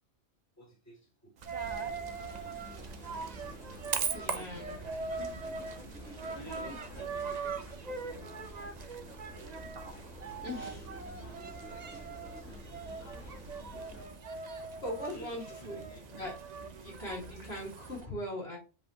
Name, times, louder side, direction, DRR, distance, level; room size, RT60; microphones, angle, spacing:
voice 1, 0.6-1.4 2.1-3.0 3.6-4.5 4.8-5.0 6.2-8.8 10.5-13.0 15.0-16.1, right 2 dB, 15° left, -3 dB, 2.3 m, -54 dB
Coin (dropping), 1.4-18.1, right 5 dB, 45° right, 0.7 m, -40 dB
sound 1, 1.4-18.0, right 4 dB, 85° right, 1.4 m, -57 dB
sound 2, 1.6-14.0, left 1 dB, 90° left, 2.3 m, -50 dB
voice 2, 4.1-4.8 10.3-10.9 14.5-15.8 16.1-16.3 16.8-18.6, left 1 dB, 60° left, -2 dB, 2.7 m, -40 dB
7.4 x 5.3 x 2.9 m, 0.33 s
omnidirectional pair, 1.2 m